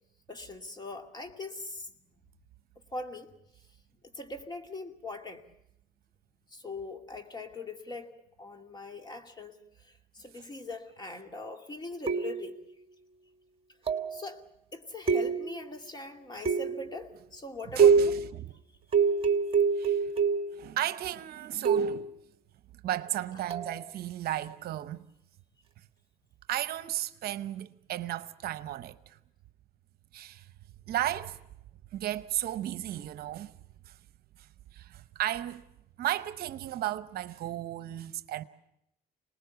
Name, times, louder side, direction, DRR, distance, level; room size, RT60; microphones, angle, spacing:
voice 1, 0.3-1.9 2.9-3.3 4.1-5.4 6.5-8.1 8.4-12.5 14.1-14.4 14.7-18.2, left 2 dB, 25° left, 2.4 m, -41 dB
sound 1, 12.1-12.6 13.9-14.2 15.1-15.7 16.4-16.9 17.8-18.3 18.9-20.6 21.6-22.1 23.5-23.7, right 6 dB, 35° right, 1.5 m, -25 dB
voice 2, 17.7-18.5 19.8-20.1 20.5-22.2 22.8-25.0 26.5-29.2 30.1-30.5 30.9-31.4 31.9-33.5 34.4-34.5 34.7-35.7 36.0-38.4, right 13 dB, 65° right, 0.8 m, -34 dB
26.0 x 20.0 x 7.0 m
cardioid pair, 110°, 17 cm